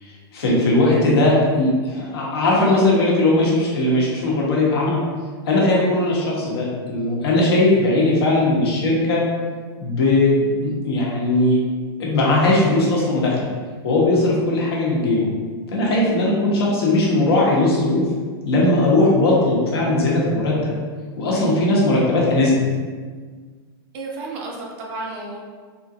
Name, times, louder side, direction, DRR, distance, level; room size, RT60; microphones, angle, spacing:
voice 1, 0.0-5.0 5.5-9.2 9.8-11.6 12.0-13.5 13.8-15.3 15.7-18.0 18.4-20.7 21.2-22.6, left 2 dB, 70° left, -4 dB, 1.1 m, -18 dB
voice 2, 23.9-25.4, right 2 dB, 30° right, -1 dB, 0.4 m, -32 dB
3.6 x 2.5 x 2.7 m, 1.5 s
supercardioid pair, 170°, 13 cm